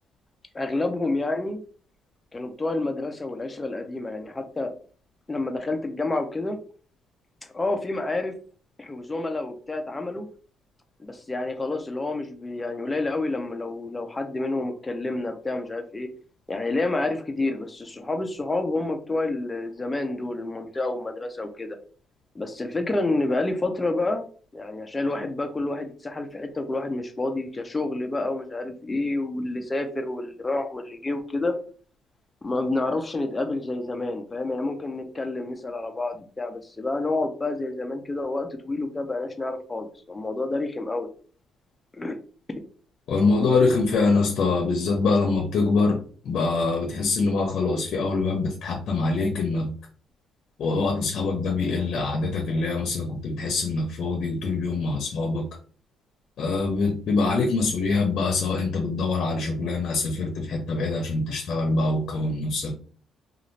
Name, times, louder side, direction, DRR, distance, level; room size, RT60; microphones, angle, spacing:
voice 1, 0.5-1.6 2.3-4.7 5.3-6.6 7.5-8.3 8.8-10.3 11.0-16.1 16.5-21.8 22.3-24.2 24.5-31.5 32.4-41.1 41.9-42.2, left 2 dB, 20° left, 5 dB, 0.6 m, -29 dB
voice 2, 43.1-49.7 50.6-55.4 56.4-62.7, left 3 dB, 65° left, 2 dB, 0.7 m, -24 dB
2.6 x 2.4 x 3.1 m, 0.42 s
cardioid pair, 90°, 0 cm